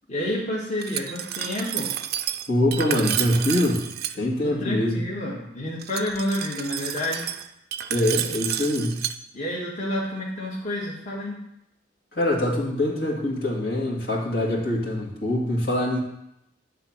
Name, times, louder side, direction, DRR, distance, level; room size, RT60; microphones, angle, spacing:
voice 1, 0.1-1.9 4.4-7.3 9.3-11.4, left 1 dB, 40° left, -5 dB, 1.9 m, -29 dB
Glass, 0.8-4.1 5.8-9.1, right 11 dB, 60° right, 0.5 m, -30 dB
voice 2, 2.5-3.9 4.1-5.0 7.9-9.1 12.1-16.0, left 1 dB, 60° left, -4 dB, 2.1 m, -24 dB
10.5 x 4.0 x 7.3 m, 0.82 s
head